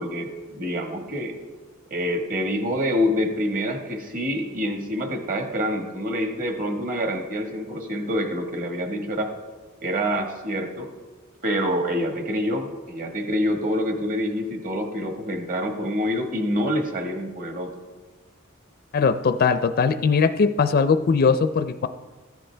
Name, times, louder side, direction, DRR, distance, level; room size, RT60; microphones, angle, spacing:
voice 1, 0.0-1.3 1.9-9.3 9.8-10.9 11.4-17.7, equal, 40° right, 3 dB, 1.5 m, -26 dB
voice 2, 18.9-21.9, left 5 dB, 45° left, 10 dB, 0.4 m, -20 dB
14.5 x 10.5 x 3.3 m, 1.3 s
head